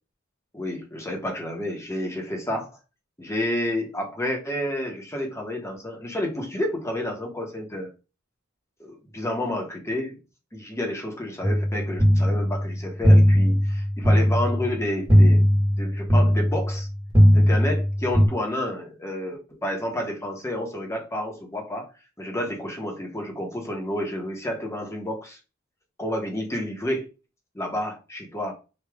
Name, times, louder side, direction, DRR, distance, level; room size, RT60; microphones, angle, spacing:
voice 1, 0.5-2.7 3.2-7.9 8.8-10.2 10.5-15.5 15.8-16.9 17.3-21.9 22.2-25.4 26.0-27.1 27.5-28.5, left 1 dB, 15° left, 1.1 m, -30 dB
sound 1, 11.4-18.3, equal, 20° right, 1.3 m, -19 dB
5.0 x 2.6 x 3.5 m
head